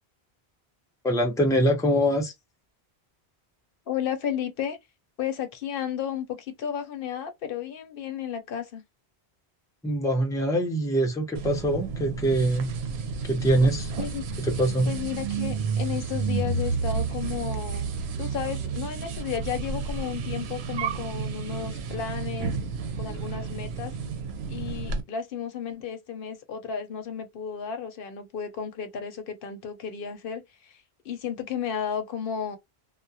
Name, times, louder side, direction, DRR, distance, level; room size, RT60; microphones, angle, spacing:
voice 1, 1.0-2.3 9.8-12.7 13.3-13.9 14.4-14.9, right 1 dB, 5° left, 0.5 m, -24 dB
voice 2, 3.9-4.8 5.2-8.8 14.0-14.2 14.9-17.9 18.2-22.6 23.0-23.9 24.5-30.8 31.0-32.6, left 8 dB, 65° left, 0.8 m, -33 dB
sound 1, 11.4-25.0, right 5 dB, 80° right, 0.8 m, -31 dB
2.3 x 2.1 x 2.6 m
omnidirectional pair, 1.1 m